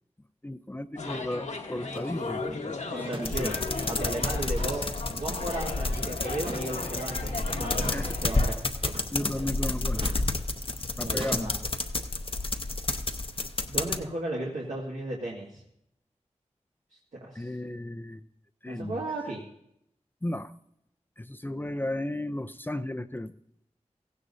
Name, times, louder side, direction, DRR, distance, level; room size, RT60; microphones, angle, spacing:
voice 1, 0.4-2.9 3.4-3.5 7.9-8.1 9.1-10.1 11.0-11.5 17.3-18.2 18.6-19.0 20.2-20.5 21.2-23.3, left 1 dB, 15° left, 12 dB, 0.5 m, -34 dB
sound 1, 1.0-8.5, left 3 dB, 80° left, 1.4 m, -36 dB
sound 2, 1.9-2.1 3.0-3.3 3.6-3.7 4.4-4.9 6.4-6.8 7.7-8.0 8.8-9.2 9.9-10.3 11.2-11.4, right 2 dB, 45° right, 1.3 m, -41 dB
voice 2, 2.9-3.6 3.8-4.8 5.1-8.6 9.2-9.5 11.0-11.6 13.7-15.6 17.2-17.5 18.7-19.4, right 1 dB, 85° right, -5 dB, 1.9 m, -35 dB
sound 3, 3.2-14.0, left 2 dB, 50° left, 0.8 m, -30 dB
16.0 x 15.5 x 2.7 m, 0.76 s
wide cardioid pair, 50°, 12 cm